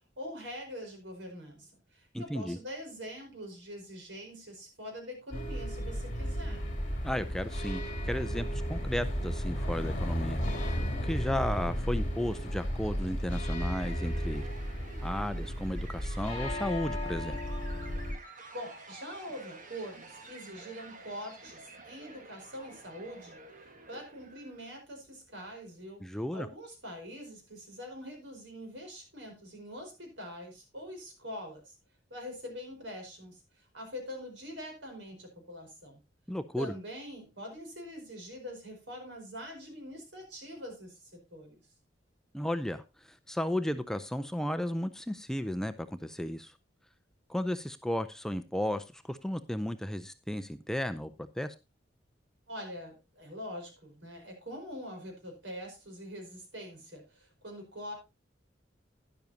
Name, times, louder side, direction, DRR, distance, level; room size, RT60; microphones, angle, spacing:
voice 1, 0.2-6.7 18.5-23.4 23.9-31.7 32.1-36.0 36.6-41.6 52.5-57.9, equal, 75° right, 3 dB, 4.9 m, -44 dB
voice 2, 2.1-2.6 7.0-14.5 15.0-17.4 26.0-26.5 36.3-36.7 42.3-46.5 47.3-51.5, left 1 dB, 5° left, 11 dB, 0.4 m, -34 dB
sound 1, 5.3-18.1, equal, 40° left, 2.9 m, -34 dB
sound 2, 13.6-24.7, right 3 dB, 45° right, 1.6 m, -50 dB
12.0 x 10.5 x 2.8 m, 0.25 s
head